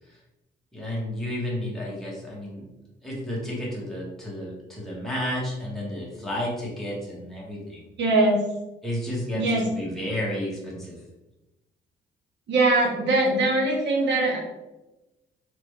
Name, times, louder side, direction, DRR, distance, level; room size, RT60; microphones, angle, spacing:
voice 1, 0.7-2.7 3.0-7.9 8.8-11.0, left 1 dB, ahead, -6 dB, 1.5 m, -32 dB
voice 2, 8.0-8.4 9.3-9.6 12.5-14.4, right 2 dB, 65° right, -1 dB, 1.2 m, -21 dB
3.3 x 3.2 x 3.2 m, 1.0 s
cardioid pair, 90°, 20 cm